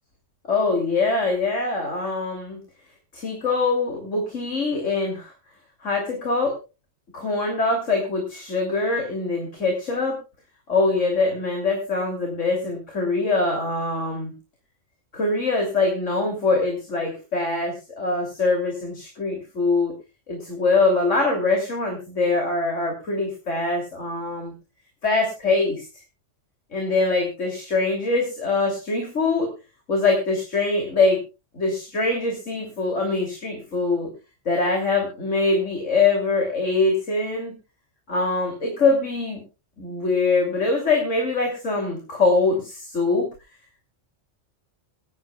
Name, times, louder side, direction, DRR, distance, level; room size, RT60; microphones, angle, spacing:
voice 1, 0.5-2.6 3.1-5.3 5.8-6.5 7.1-10.2 10.7-14.3 15.1-19.9 20.3-24.5 25.0-25.8 26.7-29.5 29.9-31.2 31.5-34.1 34.4-37.5 38.1-39.4 39.8-43.2, left 3 dB, 75° left, 0 dB, 3.4 m, -23 dB
28.0 x 9.5 x 2.4 m, 0.30 s
omnidirectional pair, 1.3 m